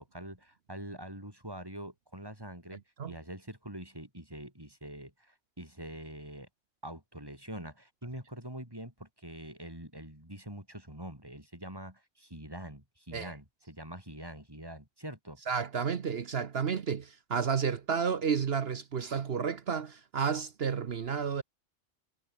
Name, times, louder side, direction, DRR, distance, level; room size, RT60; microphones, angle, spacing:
voice 1, 0.0-6.5 6.8-15.4, right 1 dB, 20° right, 6.9 m, -45 dB
voice 2, 15.5-21.4, right 6 dB, 55° right, 1.1 m, -31 dB
omnidirectional pair, 1.3 m